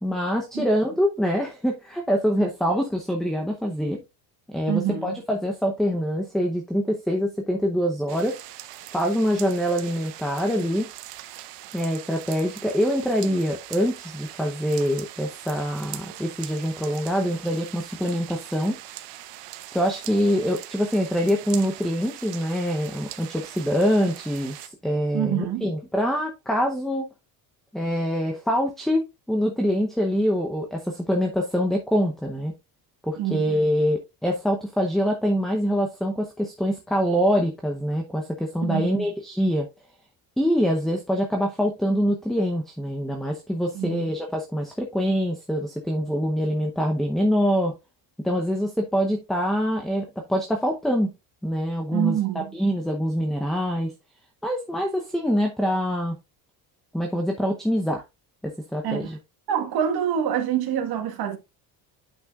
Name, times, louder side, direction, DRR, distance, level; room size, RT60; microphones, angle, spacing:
voice 1, 0.0-4.0 4.5-8.4 8.9-10.9 11.7-18.8 19.7-27.1 27.7-32.5 33.0-39.7 40.4-47.7 48.2-51.1 51.4-53.9 54.4-56.2 56.9-58.0 58.4-59.2, equal, ahead, 0.7 m, -25 dB
voice 2, 4.7-5.2 25.1-25.7 33.2-33.4 38.6-39.1 43.7-44.1 51.9-52.5 58.8-59.1 59.5-61.4, right 10 dB, 55° right, 1.6 m, -26 dB
sound 1, 8.1-24.7, right 14 dB, 75° right, 1.0 m, -41 dB
8.8 x 6.0 x 2.4 m
cardioid pair, 145°, 44 cm